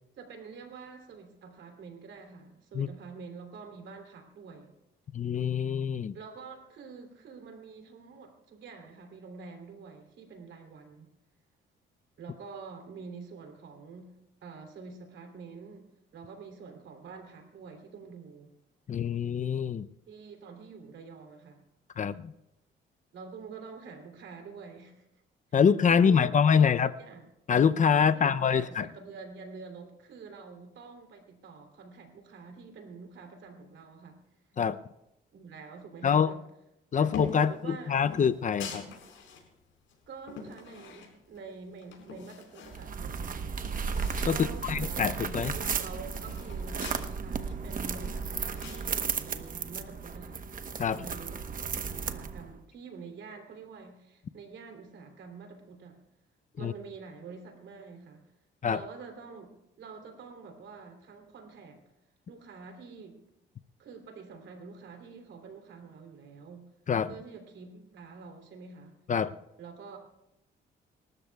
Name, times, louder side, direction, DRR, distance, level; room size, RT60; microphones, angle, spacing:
voice 1, 0.2-4.7 6.1-11.1 12.2-14.1 14.4-18.5 20.1-21.6 23.1-25.1 25.5-27.2 27.9-34.2 35.3-36.4 36.9-38.0 40.1-43.5 44.3-45.1 45.5-50.5 50.9-51.4 51.7-56.0 56.6-58.2 58.7-59.5 59.8-61.8 62.3-63.2 63.8-66.7 67.1-68.9 69.6-70.0, right 5 dB, 70° right, 4 dB, 3.2 m, -47 dB
voice 2, 5.1-6.1 18.9-19.9 22.0-22.3 25.5-26.9 27.5-28.9 34.6-34.8 36.0-36.3 36.9-38.8 44.3-44.4 44.6-45.6 50.8-51.0 56.6-56.7 58.6-58.8 66.9-67.1 69.1-69.3, left 7 dB, 40° left, 13 dB, 0.5 m, -25 dB
sound 1, 37.1-37.5 38.0-39.4 39.9-41.4 41.8-42.8 43.2-43.3 43.5-44.4 44.7-44.8 45.1-47.0 47.5-48.8, left 5 dB, 75° left, 4.8 m, -43 dB
sound 2, 42.7-52.6, right 6 dB, 45° right, 1.0 m, -34 dB
27.5 x 13.5 x 2.3 m, 0.89 s
cardioid pair, 90°, 20 cm